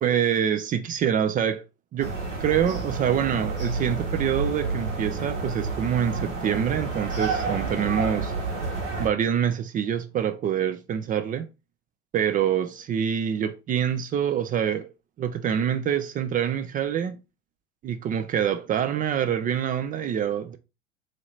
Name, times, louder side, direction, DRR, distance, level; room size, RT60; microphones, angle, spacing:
voice 1, 0.0-1.6 1.9-2.1 2.4-8.3 9.0-11.5 12.1-14.9 15.2-17.2 17.8-20.6, right 9 dB, 25° right, 0.4 m, -25 dB
sound 1, 2.0-9.1, right 3 dB, 85° right, 1.7 m, -30 dB
3.2 x 2.9 x 3.8 m
hypercardioid pair, 80°, 35 cm